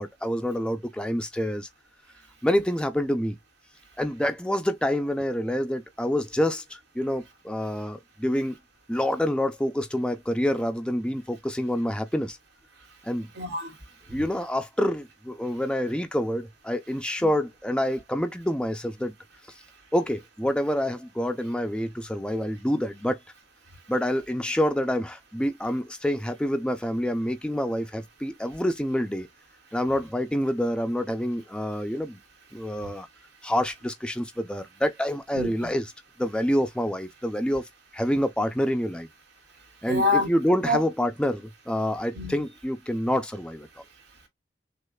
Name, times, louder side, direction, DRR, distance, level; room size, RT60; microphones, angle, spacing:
voice 1, 0.0-1.7 2.4-3.4 4.0-8.6 8.9-12.4 13.0-13.3 14.1-19.1 19.9-23.2 23.9-29.3 29.7-32.2 32.5-33.1 33.4-35.8 36.2-37.6 37.9-39.1 39.8-43.7, equal, 5° left, 0.5 m, -27 dB
voice 2, 13.3-14.2 17.2-17.3 19.6-19.8 23.7-23.8 29.7-29.8 32.5-32.9 33.4-33.5 35.3-35.7 39.5-40.8 42.1-42.3 43.8-44.3, left 2 dB, 85° right, 2.7 m, -30 dB
6.3 x 2.5 x 2.3 m
head